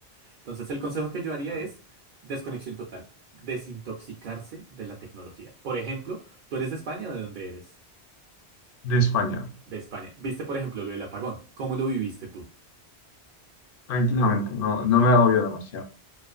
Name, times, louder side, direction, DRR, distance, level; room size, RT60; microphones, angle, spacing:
voice 1, 0.4-1.7 2.2-3.0 3.3-6.2 6.5-7.7 9.7-12.5, right 4 dB, 55° right, 0.6 m, -33 dB
voice 2, 8.8-9.5 13.9-15.8, left 2 dB, 65° left, 0.7 m, -22 dB
2.4 x 2.4 x 2.3 m
omnidirectional pair, 1.1 m